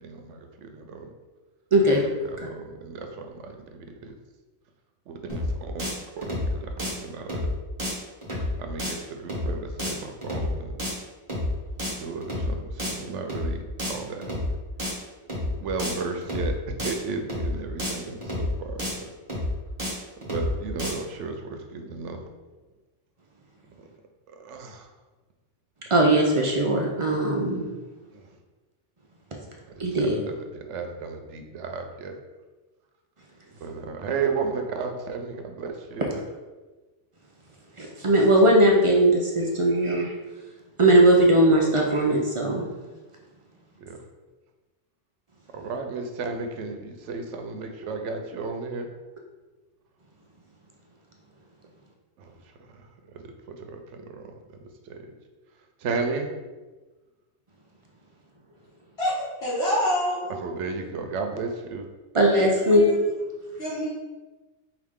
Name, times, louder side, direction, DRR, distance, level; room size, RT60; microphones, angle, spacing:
voice 1, 0.0-1.1 1.9-4.2 5.1-7.5 8.6-10.8 12.0-14.3 15.6-19.1 20.2-22.2 24.4-24.9 28.1-28.2 29.7-32.2 33.6-36.2 43.8-44.0 45.5-48.9 52.2-52.3 52.7-52.9 53.1-54.3 54.9-55.1 55.8-56.3 60.3-61.8, right 4 dB, 80° right, 5 dB, 0.9 m, -34 dB
voice 2, 1.7-2.0 25.9-27.7 29.8-30.2 37.8-40.1 40.8-42.7 62.1-62.9, right 1 dB, 55° right, -1 dB, 0.3 m, -19 dB
sound 1, 5.3-5.5 5.8-5.9 6.2-6.5 6.8-6.9 7.3-7.5 7.8-7.9 8.2-8.5 8.8-8.9 9.3-9.5 9.8-9.9 10.2-10.5 10.8-10.9 11.3-11.5 11.8-11.9 12.2-12.5 12.8-12.9 13.3-13.5 13.8-13.9 14.2-14.5 14.8-14.9 15.3-15.5 15.8-15.9 16.2-16.5 16.8-16.9 17.3-17.5 17.8-17.9 18.2-18.5 18.8-18.9 19.3-19.5 19.8-19.9 20.2-20.5 20.8-20.9, left 1 dB, 25° right, 1.1 m, -29 dB
voice 3, 59.4-60.4 62.3-62.9 63.6-63.9, equal, 60° left, -8 dB, 1.1 m, -27 dB
4.8 x 2.6 x 3.5 m, 1.2 s
omnidirectional pair, 1.2 m